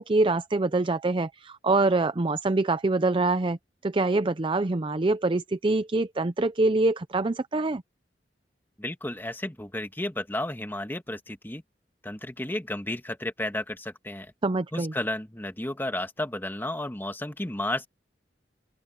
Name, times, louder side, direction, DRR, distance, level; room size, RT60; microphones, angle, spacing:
voice 1, 0.0-3.6 3.8-7.8 14.4-14.9, right 2 dB, 30° right, 0.5 m, -25 dB
voice 2, 8.8-11.6 12.0-14.3 14.7-17.9, left 1 dB, 10° left, 1.7 m, -32 dB
open air
head